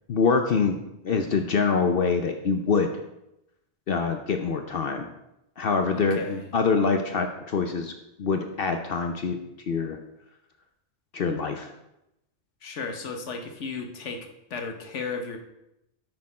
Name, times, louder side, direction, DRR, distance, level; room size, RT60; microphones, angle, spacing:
voice 1, 0.1-0.8 1.0-2.9 3.9-5.1 5.6-7.9 8.2-9.4 9.7-10.0 11.1-11.7, left 5 dB, 60° left, 5 dB, 0.8 m, -25 dB
voice 2, 5.9-6.5 12.6-15.4, left 4 dB, 80° left, 5 dB, 1.4 m, -35 dB
9.8 x 6.5 x 4.2 m, 0.87 s
omnidirectional pair, 1.2 m